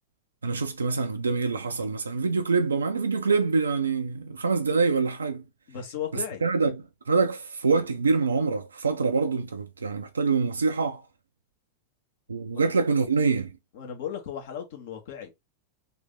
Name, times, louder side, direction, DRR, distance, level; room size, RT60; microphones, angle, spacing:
voice 1, 0.4-5.4 6.1-11.0 12.3-13.5, right 4 dB, 75° right, 0.4 m, -25 dB
voice 2, 5.7-6.4 12.5-12.6 13.7-15.3, left 9 dB, 55° left, 1.2 m, -36 dB
3.3 x 2.7 x 3.7 m
figure-of-eight pair, 90°, 0 cm